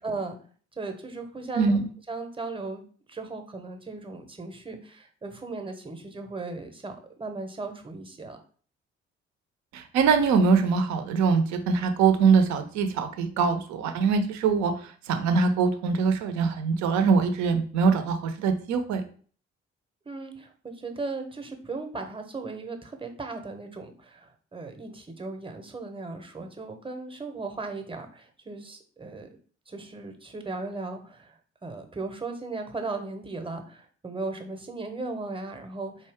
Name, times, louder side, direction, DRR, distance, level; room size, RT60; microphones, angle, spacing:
voice 1, 0.0-0.4 0.8-1.8 2.1-2.8 3.1-8.4 20.0-29.3 29.7-36.1, right 3 dB, 15° right, 6 dB, 0.9 m, -37 dB
voice 2, 1.5-1.9 9.7-14.7 15.1-19.0, right 5 dB, 60° right, 7 dB, 0.8 m, -23 dB
4.5 x 2.7 x 3.4 m, 0.43 s
figure-of-eight pair, 40°, 33 cm